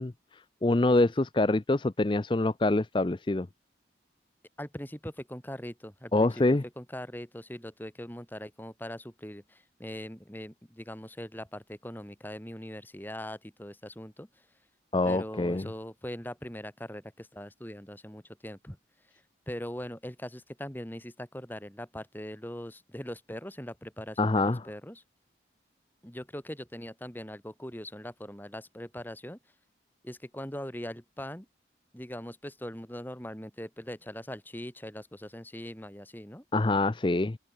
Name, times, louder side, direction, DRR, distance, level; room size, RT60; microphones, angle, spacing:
voice 1, 0.0-3.5 6.1-6.6 14.9-15.7 24.2-24.6 36.5-37.4, left 2 dB, 25° left, 0.5 m, -25 dB
voice 2, 4.6-14.3 15.0-18.8 19.5-25.0 26.0-29.4 30.0-31.5 31.9-36.4, equal, 10° left, 2.5 m, -41 dB
open air
head